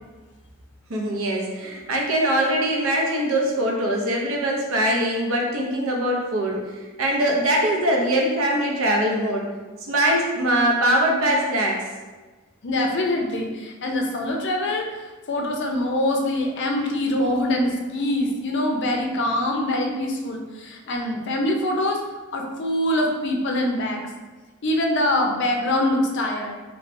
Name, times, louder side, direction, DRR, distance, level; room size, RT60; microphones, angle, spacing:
voice 1, 0.9-6.7 7.0-9.5 9.9-11.8, right 1 dB, 80° right, -1 dB, 0.6 m, -22 dB
voice 2, 12.6-14.9 15.3-22.0 22.3-24.0 24.6-26.5, left 1 dB, 60° left, 1 dB, 0.5 m, -24 dB
3.2 x 3.2 x 2.6 m, 1.3 s
head